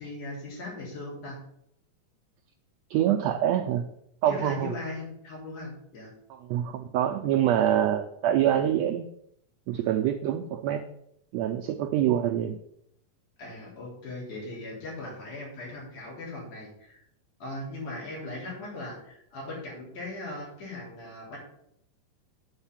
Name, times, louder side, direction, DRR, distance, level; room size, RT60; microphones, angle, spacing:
voice 1, 0.0-1.4 4.3-6.1 13.4-17.0 17.4-21.4, left 2 dB, 75° left, -4 dB, 4.9 m, -39 dB
voice 2, 2.9-3.9 4.2-4.7 6.5-9.1 9.7-10.8 11.3-12.6, right 10 dB, 90° right, 6 dB, 1.5 m, -25 dB
8.9 x 4.4 x 7.2 m, 0.73 s
omnidirectional pair, 3.6 m